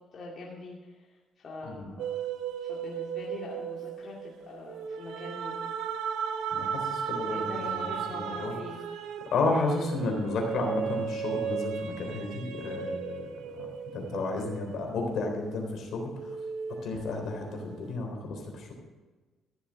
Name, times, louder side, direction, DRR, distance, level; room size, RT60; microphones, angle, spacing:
voice 1, 0.1-1.1 1.4-2.1 2.6-5.7 7.3-8.8, left 3 dB, 50° left, -4 dB, 2.5 m, -43 dB
sound 1, 2.0-15.7 16.2-17.8, right 7 dB, 85° right, 0.9 m, -36 dB
voice 2, 6.5-8.5 9.3-13.3 13.6-13.7 13.9-16.0 16.8-18.7, left 3 dB, 70° left, 2 dB, 3.6 m, -32 dB
14.5 x 7.2 x 6.3 m, 1.3 s
cardioid pair, 95°, 0 cm